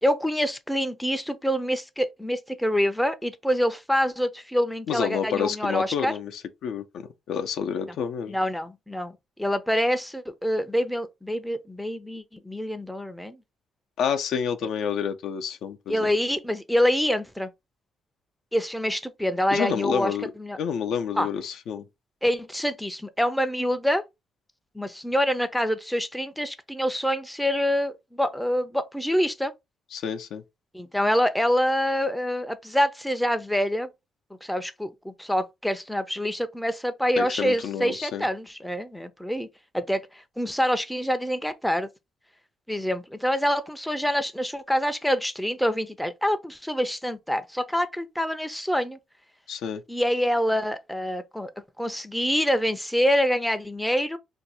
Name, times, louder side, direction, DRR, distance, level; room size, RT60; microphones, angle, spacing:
voice 1, 0.0-6.1 8.3-9.1 9.4-13.4 15.9-17.5 18.5-20.1 20.4-20.6 21.2-21.3 22.2-24.0 24.7-29.5 30.7-33.9 34.4-39.5 39.7-41.9 42.7-49.0 49.9-51.5 51.8-54.2, equal, 5° left, 0.4 m, -26 dB
voice 2, 4.9-8.4 14.0-16.1 19.5-20.3 20.6-21.8 29.9-30.4 37.2-38.3 49.5-49.8, left 7 dB, 75° left, 0.5 m, -29 dB
2.6 x 2.2 x 4.0 m
cardioid pair, 90°, 0 cm